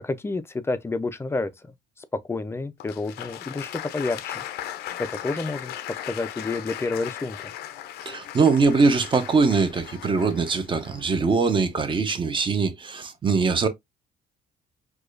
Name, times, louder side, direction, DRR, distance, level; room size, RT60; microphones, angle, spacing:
voice 1, 0.0-1.5 2.0-4.4 5.0-5.7 6.1-7.5, left 3 dB, 15° left, 0.4 m, -29 dB
Applause, 2.8-11.7, left 12 dB, 75° left, 0.5 m, -38 dB
voice 2, 8.0-13.7, right 4 dB, 30° right, 0.7 m, -22 dB
4.8 x 2.3 x 2.4 m
cardioid pair, 110°, 17 cm